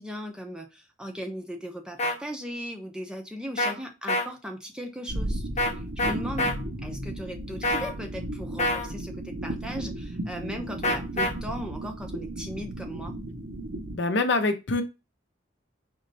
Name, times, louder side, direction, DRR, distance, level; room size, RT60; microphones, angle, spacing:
voice 1, 0.0-13.2, equal, 5° right, 3 dB, 0.7 m, -38 dB
sound 1, 2.0-2.1 3.6-3.7 4.1-4.3 5.6-5.7 6.0-6.5 7.6-7.9 8.6-8.9 10.8-11.3, left 1 dB, 35° left, 1.0 m, -25 dB
sound 2, 5.1-14.0, right 1 dB, 75° right, 1.3 m, -35 dB
voice 2, 13.9-14.8, left 3 dB, 60° left, 7 dB, 0.7 m, -24 dB
5.2 x 3.2 x 2.7 m, 0.25 s
head